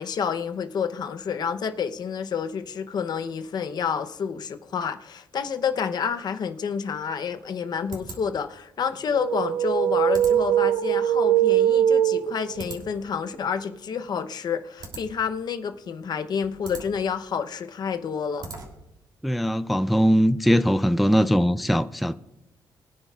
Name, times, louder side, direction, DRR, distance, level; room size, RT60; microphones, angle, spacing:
voice 1, 0.0-18.5, left 6 dB, 55° left, 0.7 m, -29 dB
sound 1, 6.8-19.0, right 3 dB, 60° right, 2.9 m, -45 dB
sound 2, 9.1-12.8, right 11 dB, 85° right, 0.4 m, -21 dB
voice 2, 19.2-22.1, equal, ahead, 0.3 m, -21 dB
23.0 x 9.9 x 2.4 m
cardioid pair, 125°, 9 cm